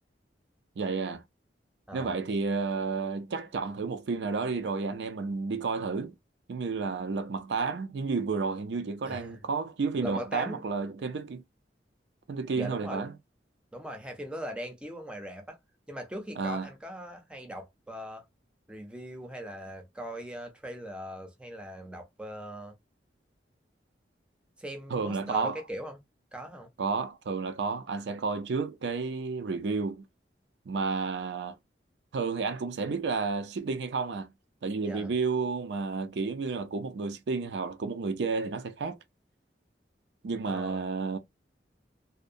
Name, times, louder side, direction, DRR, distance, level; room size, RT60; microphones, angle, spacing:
voice 1, 0.8-1.2 1.9-6.1 6.5-11.4 12.3-13.1 16.4-16.7 24.9-25.6 26.8-30.0 30.7-31.6 32.1-34.3 34.6-39.0 40.2-41.2, right 4 dB, 75° right, 0.4 m, -31 dB
voice 2, 9.0-9.4 10.0-10.6 12.5-13.0 13.7-15.6 15.9-18.2 18.7-22.7 24.6-26.0 26.3-26.7 34.8-35.1 40.5-40.8, equal, 5° right, 0.5 m, -40 dB
2.7 x 2.0 x 2.5 m
head